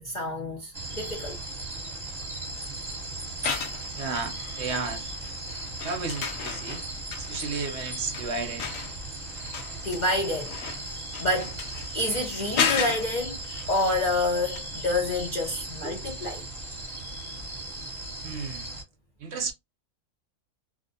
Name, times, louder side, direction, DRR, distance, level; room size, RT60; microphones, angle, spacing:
voice 1, 0.0-1.4 9.8-10.5 10.8-11.6 11.9-13.4 13.7-16.4, left 2 dB, 50° left, 0.5 m, -28 dB
sound 1, 0.7-18.8, right 2 dB, 20° right, 0.8 m, -37 dB
sound 2, 3.3-4.9 5.2-14.3 14.6-14.7, left 6 dB, 90° left, 1.0 m, -34 dB
voice 2, 4.0-5.2 5.8-6.8 7.2-8.8 15.8-16.0 18.2-18.7 19.2-19.5, right 4 dB, 65° right, 0.8 m, -33 dB
2.5 x 2.1 x 2.5 m
omnidirectional pair, 1.4 m